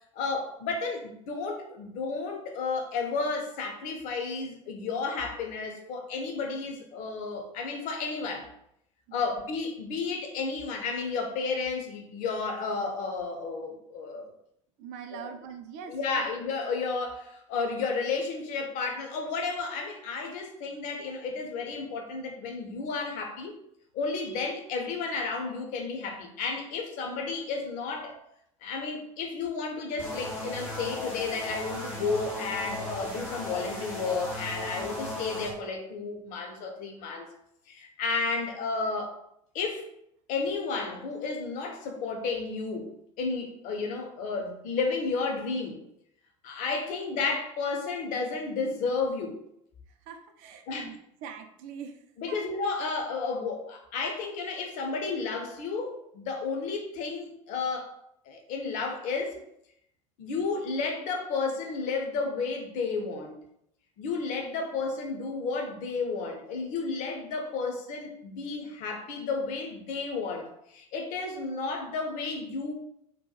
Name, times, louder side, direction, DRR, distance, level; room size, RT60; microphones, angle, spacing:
voice 1, 0.1-8.5 9.1-14.3 15.1-15.3 15.9-23.5 23.9-28.2 28.6-37.3 37.7-39.2 39.5-39.9 40.3-42.9 43.2-45.8 46.4-49.4 50.7-50.9 52.2-57.9 58.3-59.4 60.2-63.4 64.0-72.7, left 4 dB, 50° left, 3 dB, 0.5 m, -32 dB
voice 2, 14.8-16.3 50.1-52.0, right 7 dB, 50° right, 6 dB, 0.4 m, -43 dB
sound 1, 30.0-35.5, left 1 dB, 90° left, 0.8 m, -36 dB
2.7 x 2.1 x 2.3 m, 0.75 s
figure-of-eight pair, 65°, 17 cm